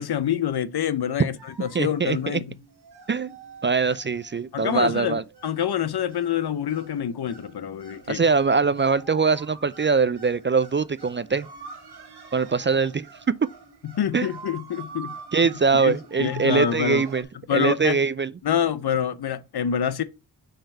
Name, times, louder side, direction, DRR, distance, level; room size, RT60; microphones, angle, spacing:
voice 1, 0.0-2.6 4.5-8.2 13.9-15.1 15.8-17.0 17.5-18.0 18.4-20.0, left 9 dB, 65° left, 0.7 m, -26 dB
sound 1, 1.4-17.2, right 4 dB, 70° right, 1.4 m, -46 dB
voice 2, 1.7-2.4 3.1-3.3 3.6-5.2 8.1-11.5 12.3-13.3 14.1-14.3 15.3-17.3 17.5-18.3, right 5 dB, 30° right, 0.4 m, -22 dB
5.7 x 3.4 x 5.4 m
cardioid pair, 50°, 41 cm